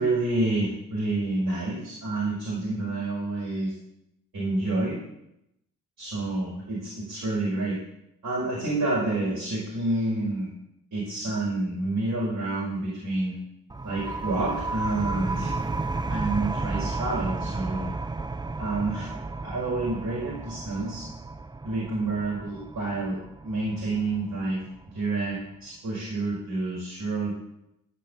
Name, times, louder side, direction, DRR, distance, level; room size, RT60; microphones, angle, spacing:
voice 1, 0.0-3.7 4.3-5.0 6.0-7.8 8.2-10.5 10.9-13.3 13.8-15.5 16.1-17.9 18.6-21.0 21.6-24.6 24.9-27.3, right 2 dB, 55° right, -6 dB, 5.4 m, -28 dB
sound 1, 13.7-25.1, right 3 dB, 10° right, 0.6 m, -33 dB
13.0 x 5.4 x 7.3 m, 0.83 s
hypercardioid pair, 40°, 40 cm